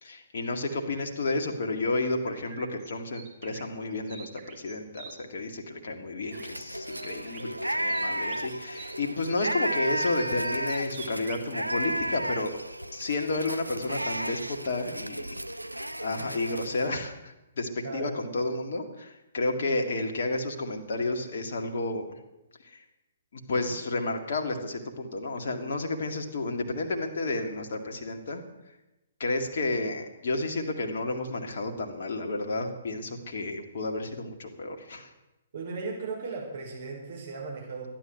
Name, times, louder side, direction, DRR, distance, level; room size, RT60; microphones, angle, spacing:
voice 1, 0.0-12.5 12.9-15.4 16.0-22.2 22.6-22.8 23.3-28.4 29.2-35.1, left 2 dB, 50° left, 3 dB, 2.1 m, -31 dB
sound 1, 2.2-5.1 6.3-6.6 6.9-9.0 9.9-11.5, right 6 dB, 30° right, 2.1 m, -47 dB
sound 2, 6.3-16.9, right 1 dB, 85° right, 0.6 m, -33 dB
voice 2, 17.8-18.1 35.5-37.9, right 4 dB, 50° right, -1 dB, 5.7 m, -36 dB
14.0 x 10.5 x 7.8 m, 0.96 s
figure-of-eight pair, 125°, 0 cm